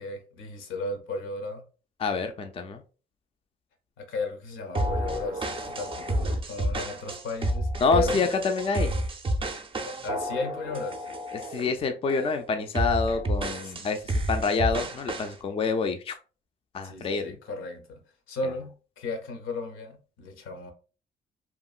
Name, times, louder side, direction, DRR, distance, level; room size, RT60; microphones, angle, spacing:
voice 1, 0.0-1.6 4.0-7.7 7.9-8.2 10.0-11.2 13.6-13.7 16.8-18.0 18.3-20.7, left 3 dB, 80° left, 0.8 m, -35 dB
voice 2, 2.0-2.8 7.8-8.9 11.3-16.1 16.7-17.4, left 4 dB, 30° left, 0.4 m, -27 dB
sound 1, 4.7-11.7 12.1-12.3 12.7-15.3, right 1 dB, 25° right, 0.5 m, -30 dB
2.9 x 2.4 x 2.3 m
cardioid pair, 90°, 20 cm